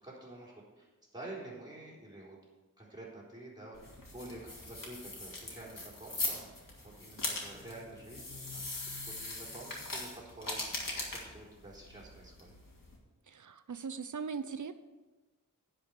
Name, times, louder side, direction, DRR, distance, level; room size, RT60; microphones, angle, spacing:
voice 1, 0.0-2.4 2.8-6.7 7.0-8.9 9.2-12.5, right 2 dB, 10° right, -5 dB, 4.0 m, -49 dB
sound 1, 3.7-13.0, left 2 dB, 80° left, 2.3 m, -41 dB
voice 2, 13.3-14.7, right 5 dB, 65° right, 11 dB, 0.7 m, -39 dB
10.5 x 5.1 x 8.2 m, 1.2 s
wide cardioid pair, 70°, 33 cm